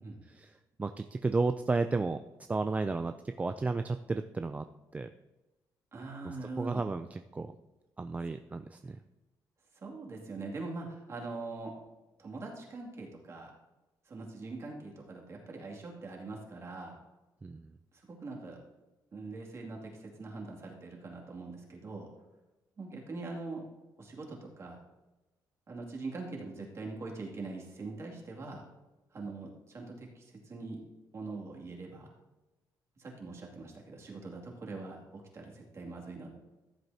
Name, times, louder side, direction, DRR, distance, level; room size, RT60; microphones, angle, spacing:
voice 1, 0.3-2.2 2.5-4.7 4.9-5.1 6.2-7.5 8.0-9.0 17.4-17.8, right 3 dB, 20° right, 8 dB, 0.3 m, -33 dB
voice 2, 5.9-6.8 9.7-11.7 12.2-13.5 14.1-17.0 18.0-18.6 19.1-22.1 22.8-23.6 24.0-24.8 25.7-28.6 29.1-30.8 31.1-32.1 33.0-36.3, right 3 dB, 40° right, -1 dB, 2.4 m, -42 dB
14.5 x 7.9 x 2.8 m, 1.1 s
cardioid pair, 120°, 8 cm